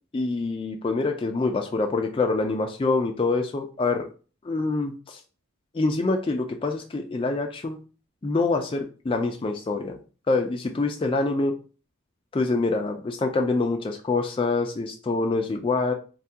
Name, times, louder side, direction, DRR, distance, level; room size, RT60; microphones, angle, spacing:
voice 1, 0.1-4.1 4.4-5.2 5.7-7.8 8.2-10.0 10.3-11.5 12.3-15.9, left 3 dB, 25° left, 3 dB, 0.3 m, -25 dB
3.3 x 2.3 x 2.7 m, 0.36 s
head